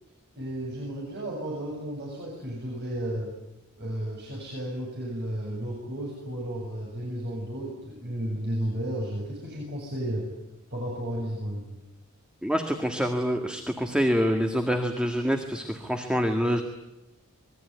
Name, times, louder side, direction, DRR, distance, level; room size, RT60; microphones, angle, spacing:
voice 1, 0.4-3.3 3.8-10.3 10.7-11.7, right 1 dB, 50° right, -3 dB, 7.7 m, -33 dB
voice 2, 12.4-16.6, equal, 5° right, 4 dB, 1.8 m, -26 dB
26.5 x 22.0 x 9.5 m, 0.92 s
head